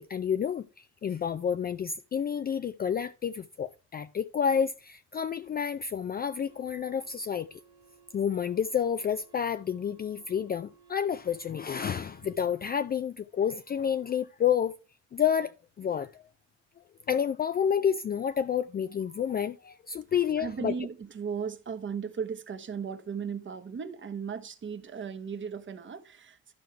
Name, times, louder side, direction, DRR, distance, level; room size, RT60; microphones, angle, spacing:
voice 1, 0.0-7.6 8.1-14.7 15.1-16.2 17.1-20.7, left 8 dB, 30° left, 0.4 m, -29 dB
sound 1, 6.5-12.5, right 5 dB, 15° right, 0.9 m, -60 dB
voice 2, 20.4-26.5, right 6 dB, 40° right, 1.0 m, -36 dB
12.0 x 4.6 x 4.5 m
cardioid pair, 90°, 30 cm